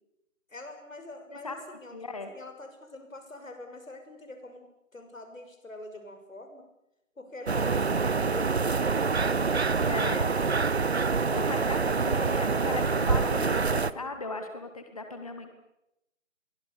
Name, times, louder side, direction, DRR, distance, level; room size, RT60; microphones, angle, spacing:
voice 1, 0.5-2.0 2.3-4.7 4.9-6.6 7.2-10.6 11.0-11.4 12.4-14.1, left 2 dB, 85° left, 6 dB, 6.1 m, -45 dB
voice 2, 1.9-2.3 9.9-10.3 11.0-15.5, left 3 dB, 25° left, 6 dB, 2.2 m, -37 dB
sound 1, 7.5-13.9, right 4 dB, 55° right, 0.9 m, -26 dB
29.0 x 23.5 x 7.0 m, 0.89 s
figure-of-eight pair, 175°, 39 cm